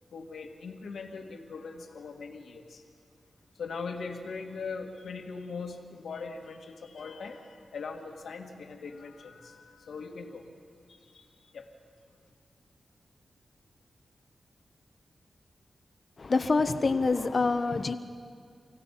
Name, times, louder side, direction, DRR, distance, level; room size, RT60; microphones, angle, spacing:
voice 1, 0.1-2.8 3.6-10.4 10.9-11.3 11.5-11.6, left 4 dB, 90° left, 3 dB, 2.0 m, -40 dB
voice 2, 16.2-17.9, left 3 dB, 45° left, 10 dB, 1.0 m, -26 dB
29.0 x 16.0 x 5.8 m, 2.2 s
cardioid pair, 75°, 0 cm